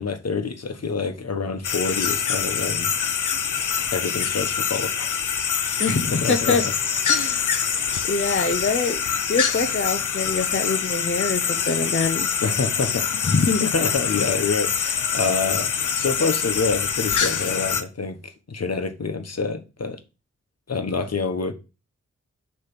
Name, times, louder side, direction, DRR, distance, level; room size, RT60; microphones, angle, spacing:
voice 1, 0.0-2.9 3.9-5.4 6.1-6.7 7.1-7.4 12.4-13.1 13.6-20.0 20.7-21.5, left 4 dB, 55° left, 1.3 m, -27 dB
sound 1, 1.6-17.8, left 7 dB, 85° left, 0.8 m, -25 dB
voice 2, 5.8-6.6 7.1-7.5 8.1-9.0 9.3-12.3 13.2-13.6, left 4 dB, 40° left, 0.8 m, -24 dB
6.3 x 3.4 x 6.0 m
cardioid pair, 40°, 30 cm